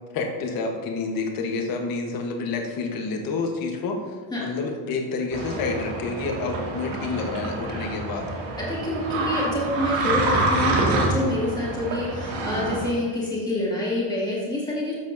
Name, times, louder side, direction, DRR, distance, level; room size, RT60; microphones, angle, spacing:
voice 1, 0.1-4.0 4.4-8.3, left 4 dB, 50° left, 2 dB, 1.2 m, -28 dB
sound 1, 5.3-12.9, right 2 dB, 80° right, 2.2 m, -27 dB
voice 2, 8.6-15.0, left 1 dB, 10° left, -6 dB, 2.1 m, -27 dB
13.0 x 7.2 x 2.7 m, 1.5 s
cardioid pair, 175°, 45 cm